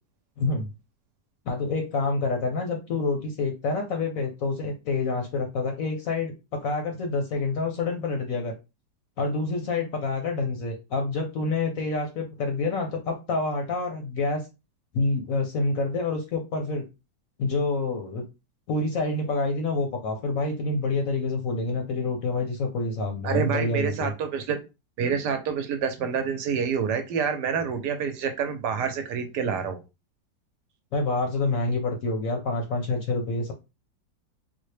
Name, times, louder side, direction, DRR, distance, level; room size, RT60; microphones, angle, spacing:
voice 1, 0.4-0.7 1.5-8.6 9.2-14.5 14.9-16.8 17.4-18.2 18.7-24.1 30.9-33.5, left 3 dB, 65° left, 3 dB, 0.9 m, -27 dB
voice 2, 23.2-24.6 25.0-29.8, right 6 dB, 75° right, 7 dB, 1.2 m, -27 dB
4.0 x 2.1 x 3.2 m, 0.27 s
omnidirectional pair, 1.9 m